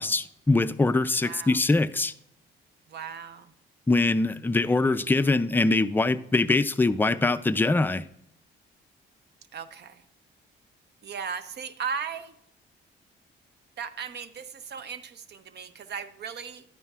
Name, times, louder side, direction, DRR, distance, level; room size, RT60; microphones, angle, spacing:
voice 1, 0.0-2.1 3.9-8.1, left 2 dB, 10° left, 0.4 m, -23 dB
voice 2, 1.2-1.6 2.9-3.5 9.5-10.0 11.0-12.3 13.8-16.6, right 6 dB, 55° right, 0.7 m, -37 dB
11.5 x 9.2 x 2.4 m
cardioid pair, 90°, 20 cm